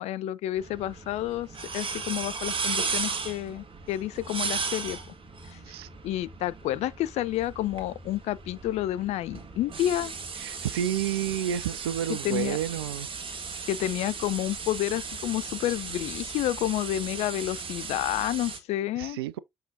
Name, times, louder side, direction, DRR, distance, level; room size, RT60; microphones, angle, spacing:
voice 1, 0.0-1.5 1.7-5.0 5.5-5.8 6.0-10.1 12.1-12.6 13.7-19.2, left 14 dB, 60° left, 0.4 m, -30 dB
sound 1, 0.6-18.6, right 5 dB, 45° right, 1.5 m, -36 dB
voice 2, 10.4-13.1 19.0-19.4, right 11 dB, 75° right, 0.4 m, -30 dB
6.6 x 5.6 x 2.6 m
figure-of-eight pair, 40°, 13 cm